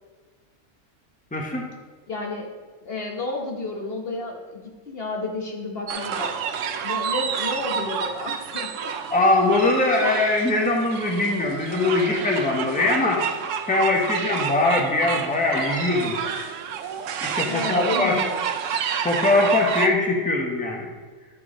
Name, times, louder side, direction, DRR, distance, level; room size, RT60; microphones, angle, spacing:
voice 1, 1.3-1.7 9.1-13.2 13.7-16.2 17.2-18.2 19.0-20.9, left 2 dB, 5° left, 0 dB, 1.1 m, -21 dB
voice 2, 2.1-2.5 2.8-6.4 6.8-9.1 10.0-10.2 17.5-18.5, left 2 dB, 55° left, 1 dB, 1.2 m, -31 dB
sound 1, 5.9-19.9, right 7 dB, 80° right, 1.0 m, -29 dB
12.0 x 4.6 x 5.0 m, 1.4 s
omnidirectional pair, 1.3 m